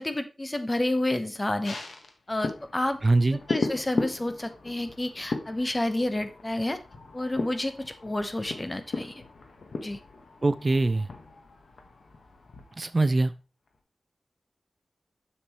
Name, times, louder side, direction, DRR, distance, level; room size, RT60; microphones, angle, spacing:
voice 1, 0.0-1.8 2.3-3.0 3.3-6.8 7.1-9.2 9.8-10.0, left 1 dB, 25° left, 1.0 m, -30 dB
sound 1, 1.6-13.3 13.7-13.8, left 3 dB, 85° left, 1.3 m, -37 dB
voice 2, 3.0-3.4 10.4-11.1 12.8-13.3, right 2 dB, 40° right, 0.4 m, -22 dB
7.0 x 6.9 x 3.0 m
wide cardioid pair, 80°, 0 cm